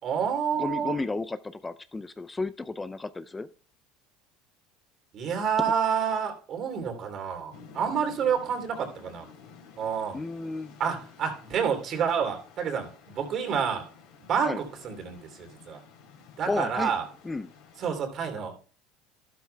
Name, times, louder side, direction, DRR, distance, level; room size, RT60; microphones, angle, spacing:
voice 1, 0.0-1.0 5.1-9.3 9.8-10.2 10.8-13.9 14.2-15.8 16.4-17.0 17.8-18.6, right 7 dB, 50° right, 5 dB, 3.0 m, -29 dB
voice 2, 0.6-3.5 10.1-10.8 14.4-14.6 16.5-16.9 17.2-17.5, left 3 dB, 15° left, 13 dB, 0.4 m, -32 dB
sound 1, 7.5-17.9, left 5 dB, 75° left, 3.4 m, -52 dB
12.5 x 12.0 x 2.3 m, 0.39 s
supercardioid pair, 105°, 0 cm